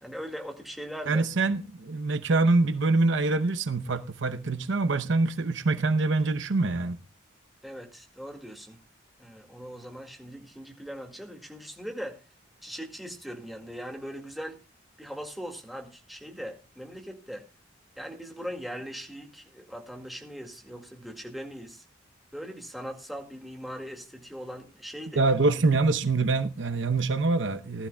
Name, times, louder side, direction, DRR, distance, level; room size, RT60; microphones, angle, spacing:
voice 1, 0.0-1.3 7.6-8.8 9.2-12.2 12.6-14.6 15.0-17.5 18.0-21.8 22.3-25.3, equal, ahead, 2.0 m, -40 dB
voice 2, 1.1-7.0 25.2-27.9, right 3 dB, 70° right, 0.8 m, -25 dB
20.0 x 12.5 x 2.3 m
head